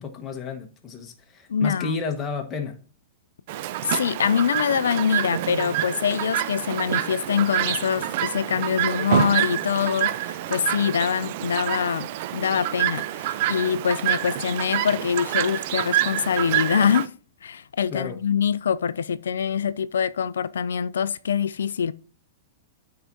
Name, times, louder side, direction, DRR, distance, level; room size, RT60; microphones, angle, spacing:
voice 1, 0.0-2.8 17.9-18.2, left 5 dB, 25° left, 1.1 m, -32 dB
voice 2, 1.5-1.9 3.8-17.1 17.4-21.9, left 7 dB, 70° left, 0.3 m, -24 dB
Chirp tweet, 3.5-17.1, right 13 dB, 50° right, 0.5 m, -27 dB
11.5 x 4.8 x 2.6 m
figure-of-eight pair, 100°, 0 cm